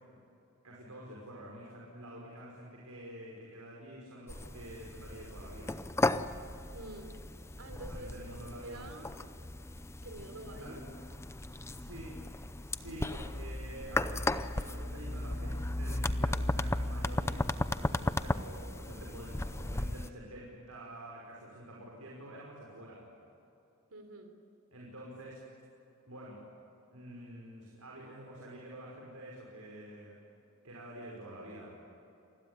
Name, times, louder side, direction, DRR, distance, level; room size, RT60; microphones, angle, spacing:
voice 1, 0.6-5.8 7.9-8.8 10.5-10.8 11.6-12.2 12.6-23.0 24.7-25.4 26.1-26.4 26.9-30.2 30.6-31.7, right 1 dB, 90° right, -3 dB, 5.6 m, -48 dB
sound 1, 4.3-20.1, left 2 dB, 10° left, 0.6 m, -35 dB
voice 2, 6.7-7.2 7.6-9.1 10.0-10.8 23.9-24.3, right 2 dB, 70° right, 6 dB, 3.8 m, -47 dB
28.5 x 20.5 x 9.9 m, 2.9 s
head